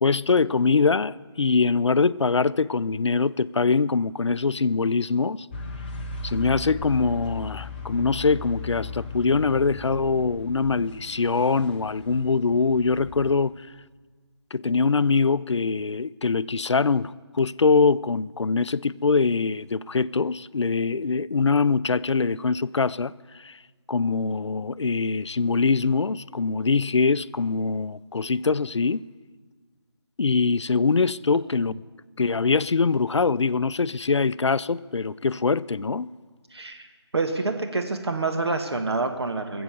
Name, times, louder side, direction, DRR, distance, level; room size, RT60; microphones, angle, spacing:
voice 1, 0.0-5.5 6.2-13.5 14.5-23.1 23.4-23.6 23.9-29.0 30.2-31.8 32.2-36.1, left 4 dB, 85° left, 0.4 m, -23 dB
sound 1, 5.5-13.3, left 3 dB, 20° left, 0.9 m, -37 dB
voice 2, 36.5-36.9 37.1-39.6, right 3 dB, 65° right, 1.4 m, -27 dB
20.0 x 7.8 x 6.9 m
figure-of-eight pair, 160°, 15 cm